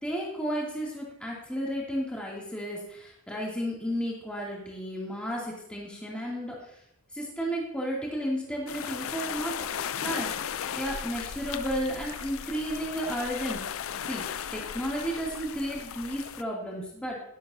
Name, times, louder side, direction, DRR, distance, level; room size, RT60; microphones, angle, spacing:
voice 1, 0.0-6.7 7.1-9.6 10.0-13.6 14.1-14.2 14.5-17.2, equal, 5° left, -4 dB, 2.5 m, -33 dB
sound 1, 8.7-16.4, left 8 dB, 70° left, 0.5 m, -36 dB
12.0 x 12.0 x 2.7 m, 0.74 s
head